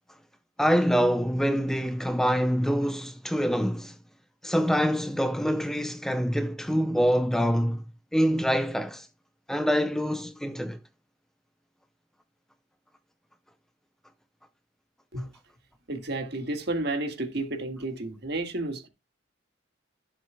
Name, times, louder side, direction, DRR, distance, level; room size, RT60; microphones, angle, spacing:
voice 1, 0.6-3.9 4.4-7.8 8.1-9.1 9.5-10.8, equal, ahead, 0.5 m, -25 dB
voice 2, 15.9-18.9, right 2 dB, 55° right, 1.7 m, -31 dB
14.5 x 7.6 x 2.2 m
head